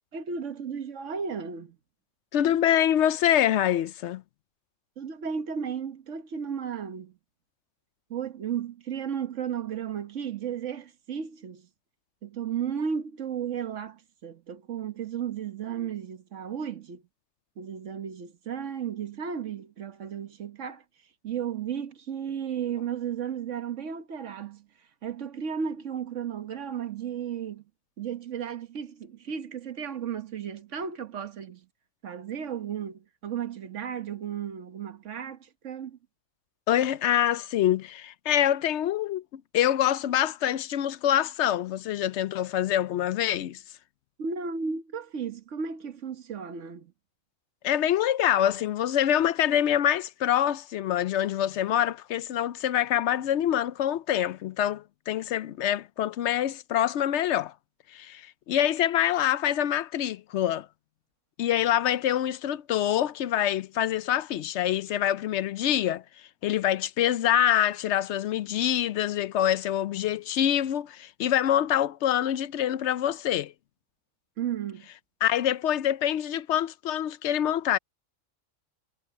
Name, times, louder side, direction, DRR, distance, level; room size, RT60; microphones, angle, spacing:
voice 1, 0.1-1.8 5.0-7.2 8.1-11.7 12.2-17.0 17.6-20.8 21.2-24.7 25.0-27.6 28.0-31.7 32.0-36.0 44.2-46.9 74.4-74.9, right 7 dB, 70° right, 1.5 m, -34 dB
voice 2, 2.3-4.2 36.7-43.6 47.6-57.5 57.9-60.7 61.4-66.0 66.4-73.5 75.2-77.8, left 11 dB, 70° left, 0.8 m, -25 dB
omnidirectional pair, 1.3 m